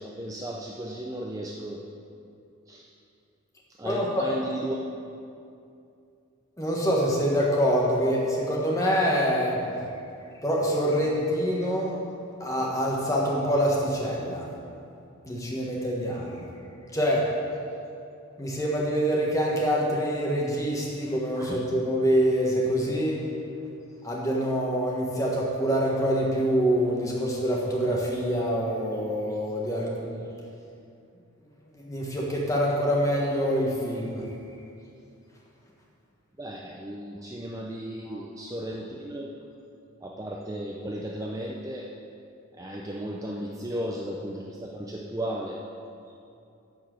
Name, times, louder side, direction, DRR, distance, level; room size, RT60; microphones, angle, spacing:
voice 1, 0.0-1.8 2.7-2.9 3.8-4.8 21.4-21.6 36.4-39.3 40.0-41.9 42.6-45.6, right 1 dB, 15° right, -2 dB, 0.5 m, -35 dB
voice 2, 3.8-4.2 6.6-9.6 10.4-12.0 12.4-14.4 15.3-16.4 16.9-17.3 18.4-23.2 24.0-30.2 31.9-34.2 38.1-38.2, equal, 15° left, -3 dB, 1.4 m, -25 dB
11.0 x 4.6 x 7.6 m, 2.6 s
head